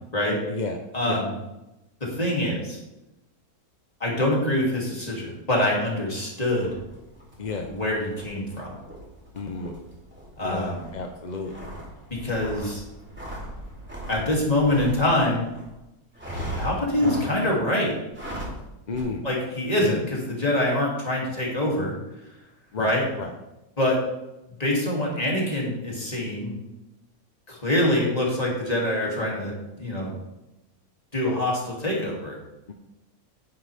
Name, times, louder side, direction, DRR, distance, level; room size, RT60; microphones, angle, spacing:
voice 1, 0.9-1.3 2.0-2.8 4.0-6.7 7.7-8.7 10.4-10.9 12.2-12.8 14.1-15.4 16.6-17.9 19.2-21.9 22.8-23.0 23.8-24.0 24.6-26.5 27.5-29.5 29.8-30.1 31.1-32.4, left 1 dB, 25° left, -3 dB, 2.8 m, -25 dB
sound 1, 6.5-15.7 16.1-17.6 18.1-18.6 18.9-19.0, right 1 dB, 5° right, 3.0 m, -38 dB
voice 2, 7.4-7.7 9.3-9.8 10.4-11.7 18.9-19.2 19.8-20.0 22.7-22.9 23.2-23.3 32.7-32.8, left 4 dB, 40° left, 4 dB, 0.6 m, -32 dB
9.9 x 9.8 x 3.5 m, 0.96 s
omnidirectional pair, 1.6 m